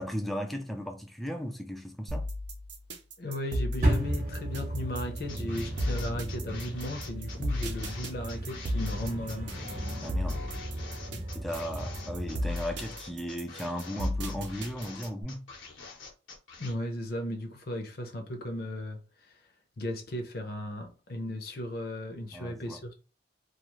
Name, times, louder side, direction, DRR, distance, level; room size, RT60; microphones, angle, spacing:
voice 1, 0.0-2.3 10.0-10.4 11.3-15.5 22.3-22.8, equal, ahead, 0.3 m, -36 dB
sound 1, 2.1-15.2, equal, 70° right, 0.6 m, -34 dB
voice 2, 3.2-9.6 11.1-11.2 16.6-19.3 19.8-22.9, left 1 dB, 50° left, 0.6 m, -36 dB
sound 2, 3.8-12.6, right 1 dB, 40° right, 0.8 m, -34 dB
sound 3, 5.3-16.7, left 4 dB, 90° left, 0.9 m, -46 dB
2.4 x 2.3 x 3.0 m
head